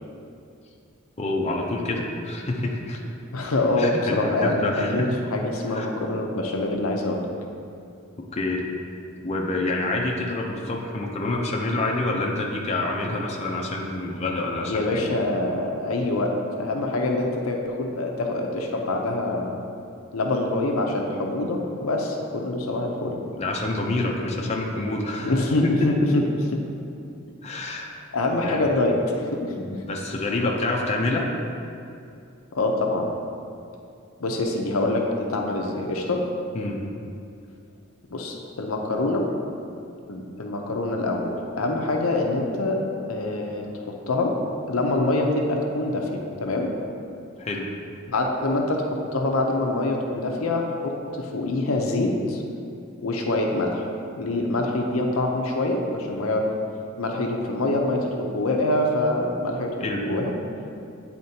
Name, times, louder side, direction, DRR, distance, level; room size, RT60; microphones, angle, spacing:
voice 1, 1.2-3.0 3.8-4.9 5.7-5.9 8.3-8.6 9.2-15.0 23.3-25.4 25.8-25.9 27.4-27.9 28.4-28.7 29.5-31.3 36.5-36.8 47.4-47.7 59.8-60.0, left 2 dB, 30° left, -2 dB, 0.6 m, -27 dB
voice 2, 3.3-7.3 14.7-19.6 20.1-23.2 25.2-26.6 28.1-29.5 32.5-33.1 34.2-36.2 38.1-39.3 40.1-42.8 43.1-44.3 44.7-46.7 48.1-52.4 53.0-53.9 54.2-56.5 57.0-59.7 60.0-60.3, left 2 dB, 70° left, 1 dB, 0.7 m, -25 dB
9.4 x 4.2 x 2.8 m, 2.5 s
head